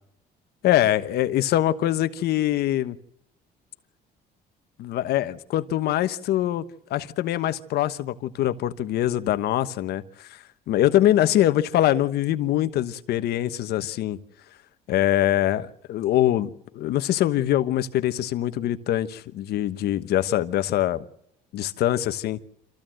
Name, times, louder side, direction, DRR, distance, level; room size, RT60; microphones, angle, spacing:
voice 1, 0.6-3.0 4.8-6.6 6.9-14.2 14.9-16.5 16.7-21.0 21.5-22.4, left 13 dB, 75° left, 1.2 m, -23 dB
26.0 x 14.5 x 7.7 m
cardioid pair, 110°, 17 cm